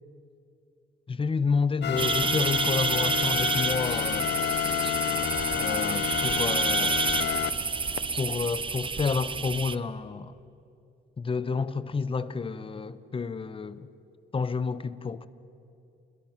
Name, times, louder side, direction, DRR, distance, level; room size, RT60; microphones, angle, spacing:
voice 1, 1.1-4.3 5.5-7.0 7.3-7.4 8.2-10.3 11.2-13.9 14.3-15.3, left 4 dB, 25° left, 0.9 m, -30 dB
sound 1, 1.8-8.0, left 10 dB, 60° left, 0.8 m, -30 dB
sound 2, 2.0-9.8, right 5 dB, 25° right, 0.7 m, -29 dB
28.5 x 22.0 x 5.9 m
cardioid pair, 90°, 20 cm